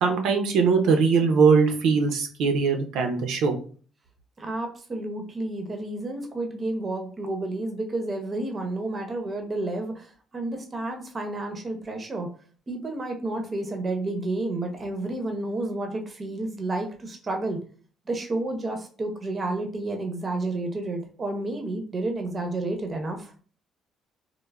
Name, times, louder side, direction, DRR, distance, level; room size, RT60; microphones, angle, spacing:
voice 1, 0.0-3.5, right 5 dB, 80° right, 4 dB, 0.5 m, -21 dB
voice 2, 4.4-12.3 12.7-17.6 18.1-23.3, right 2 dB, 25° right, 4 dB, 0.5 m, -30 dB
3.1 x 2.0 x 2.2 m, 0.41 s
cardioid pair, 135°, 0 cm